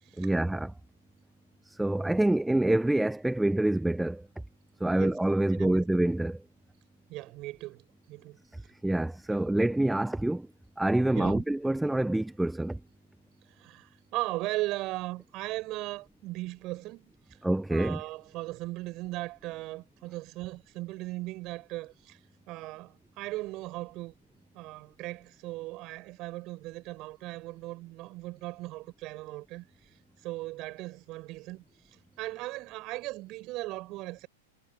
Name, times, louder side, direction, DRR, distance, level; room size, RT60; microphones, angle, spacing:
voice 1, 0.2-0.7 1.7-4.3 4.8-6.4 8.8-10.5 10.8-12.8 17.4-18.0, right 1 dB, 5° right, 1.0 m, -26 dB
voice 2, 5.5-5.9 7.1-8.4 9.3-9.4 11.1-11.4 13.6-17.4 17.7-22.2 22.5-24.1 24.5-29.9 30.2-31.6 32.2-34.3, right 19 dB, 40° right, 6.9 m, -38 dB
hypercardioid pair, 110°, 0 cm